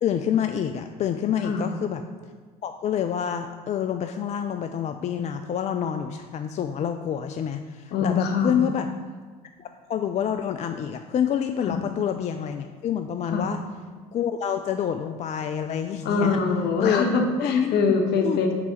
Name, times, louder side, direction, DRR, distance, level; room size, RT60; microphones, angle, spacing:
voice 1, 0.0-2.0 2.6-8.9 9.6-13.6 14.1-16.4 16.8-17.1 17.4-17.9 18.2-18.4, left 9 dB, 35° left, 7 dB, 0.4 m, -27 dB
voice 2, 7.9-8.6 11.7-11.8 13.3-13.5 16.0-18.5, left 4 dB, 60° left, 3 dB, 1.1 m, -24 dB
4.7 x 4.7 x 5.5 m, 1.5 s
hypercardioid pair, 65°, 20 cm